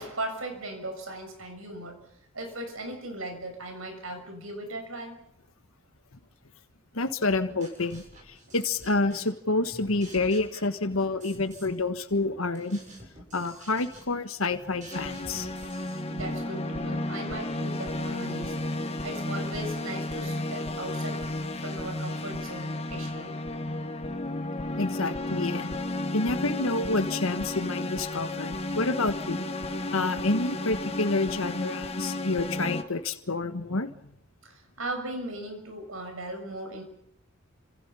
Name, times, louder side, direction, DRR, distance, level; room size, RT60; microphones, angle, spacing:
voice 1, 0.0-2.0 2.3-5.2 8.4-8.6 16.1-21.3 21.5-23.3 29.8-29.9 34.4-36.8, right 1 dB, 75° right, 5 dB, 6.6 m, -38 dB
voice 2, 6.9-12.8 13.3-15.5 24.8-25.7 26.1-29.4 29.9-33.9, left 3 dB, 80° left, 8 dB, 1.5 m, -28 dB
sound 1, 7.3-9.4 9.7-11.8 12.1-16.5, right 1 dB, 35° right, 7.0 m, -49 dB
sound 2, 14.9-32.8, left 1 dB, 30° left, 1.8 m, -33 dB
29.5 x 26.5 x 5.6 m, 0.74 s
head